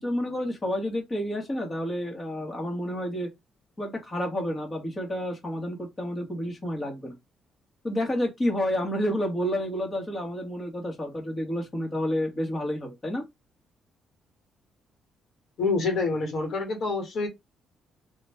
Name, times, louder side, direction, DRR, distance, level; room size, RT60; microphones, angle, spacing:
voice 1, 0.0-3.3 3.8-7.1 7.8-13.2, equal, 30° left, 1.8 m, -30 dB
voice 2, 15.6-17.3, left 3 dB, 65° left, 2.0 m, -27 dB
4.1 x 3.1 x 3.5 m
cardioid pair, 90°, 0 cm